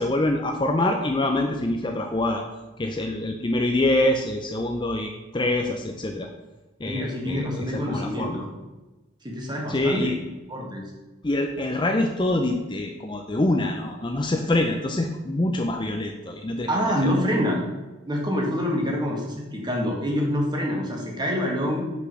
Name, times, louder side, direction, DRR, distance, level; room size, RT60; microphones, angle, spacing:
voice 1, 0.0-2.4 2.8-6.3 6.8-8.4 9.7-10.2 11.2-16.7 17.0-17.1, left 1 dB, 25° left, 3 dB, 0.5 m, -25 dB
voice 2, 6.8-8.5 9.2-10.1 10.5-10.8 16.7-17.6 18.1-21.9, equal, 20° right, 0 dB, 1.6 m, -26 dB
6.2 x 5.7 x 6.1 m, 1.1 s
head